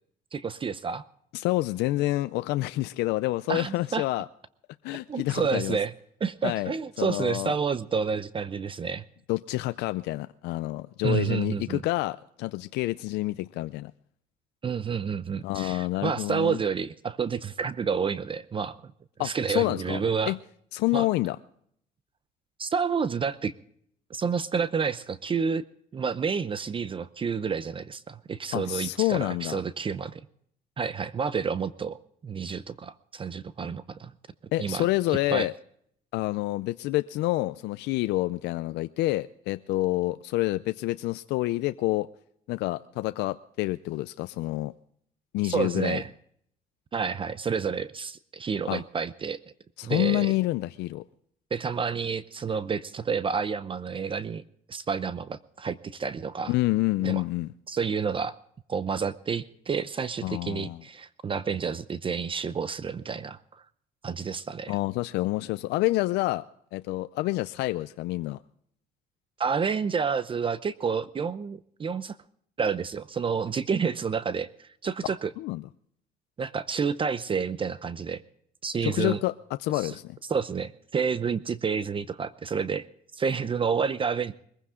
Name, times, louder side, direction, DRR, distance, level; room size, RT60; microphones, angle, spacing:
voice 1, 0.3-1.0 3.5-4.0 5.1-5.9 6.2-9.0 11.0-11.8 14.6-18.8 19.2-20.3 20.9-21.1 22.6-23.5 24.1-25.6 25.9-30.2 30.8-34.1 34.6-34.9 35.3-35.5 45.4-46.1 46.9-49.4 49.8-50.3 51.5-54.4 54.7-56.5 57.0-57.2 57.7-58.4 58.7-63.6 64.0-64.7 69.4-72.2 72.6-75.3 76.4-78.2 78.6-79.2 79.7-79.9 80.3-82.9 83.1-84.3, right 6 dB, 30° right, 0.7 m, -29 dB
voice 2, 1.3-4.3 4.8-5.8 6.4-6.7 7.0-7.5 9.3-13.9 15.4-16.6 19.2-20.4 20.7-21.4 28.5-29.6 34.5-35.5 36.1-42.1 42.5-44.7 45.3-46.0 48.7-48.8 49.8-51.0 56.5-57.5 60.2-60.8 64.7-66.4 66.7-68.4 75.4-75.6 78.8-79.3 79.6-80.2, left 18 dB, 85° left, 0.5 m, -28 dB
22.0 x 15.5 x 3.7 m
cardioid pair, 110°, 17 cm